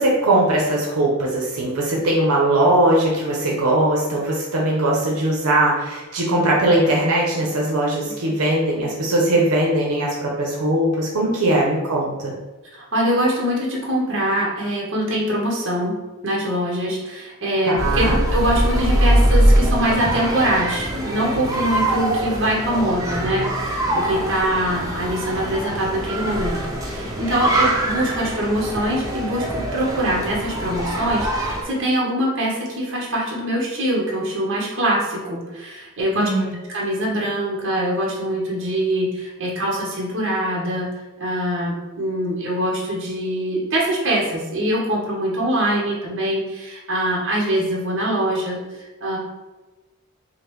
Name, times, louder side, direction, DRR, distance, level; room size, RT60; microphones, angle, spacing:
voice 1, 0.0-12.3 17.7-18.2 36.1-36.6, right 1 dB, 90° right, -3 dB, 0.7 m, -20 dB
voice 2, 12.7-16.0 16.2-36.3 36.7-40.9 41.2-49.2, right 1 dB, 55° right, -4 dB, 1.0 m, -23 dB
sound 1, 17.8-31.6, right 1 dB, 15° right, 0.5 m, -22 dB
5.1 x 2.1 x 3.0 m, 1.1 s
head